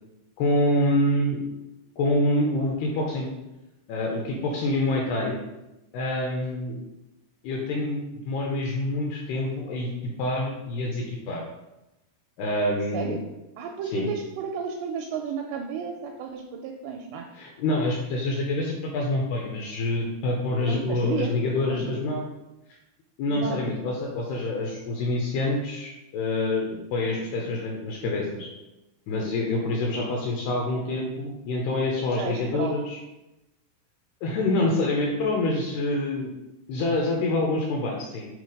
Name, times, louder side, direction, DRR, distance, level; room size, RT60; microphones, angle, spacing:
voice 1, 0.4-1.4 2.0-3.3 3.9-5.4 5.9-6.8 7.4-11.4 12.4-13.2 13.9-14.1 17.3-22.2 23.2-28.5 29.1-33.0 34.2-36.3 36.7-38.3, left 2 dB, 80° left, 0 dB, 2.4 m, -26 dB
voice 2, 13.6-17.3 20.6-21.3 21.7-22.0 23.3-23.7 27.1-27.6 32.0-32.7, right 6 dB, 85° right, 3 dB, 2.4 m, -33 dB
7.5 x 3.4 x 5.1 m, 0.98 s
omnidirectional pair, 5.4 m